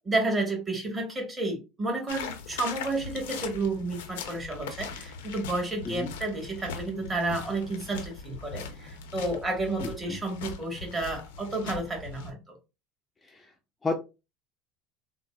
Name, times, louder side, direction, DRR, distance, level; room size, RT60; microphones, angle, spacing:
voice 1, 0.0-12.6, right 2 dB, 20° right, 1 dB, 1.3 m, -31 dB
sound 1, 2.1-12.3, left 5 dB, 90° left, 0.6 m, -40 dB
voice 2, 9.8-10.2 13.3-13.5 13.8-13.9, left 3 dB, 20° left, 4 dB, 0.4 m, -31 dB
3.8 x 2.0 x 2.3 m, 0.27 s
supercardioid pair, 105°, 0 cm